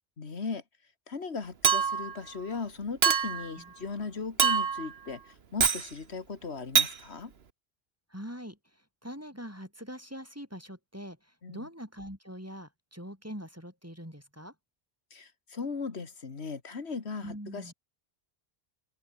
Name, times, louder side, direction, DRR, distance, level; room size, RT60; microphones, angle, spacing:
voice 1, 0.2-0.6 1.1-7.3 11.4-11.7 15.1-17.7, left 4 dB, 80° left, 2.1 m, -38 dB
Chink clink, 1.6-2.2 3.0-3.5 4.4-4.9 5.6-5.9 6.8-6.9, right 6 dB, 70° right, 1.5 m, -24 dB
voice 2, 8.1-14.5 17.2-17.7, equal, 15° right, 6.8 m, -43 dB
omnidirectional pair, 1.1 m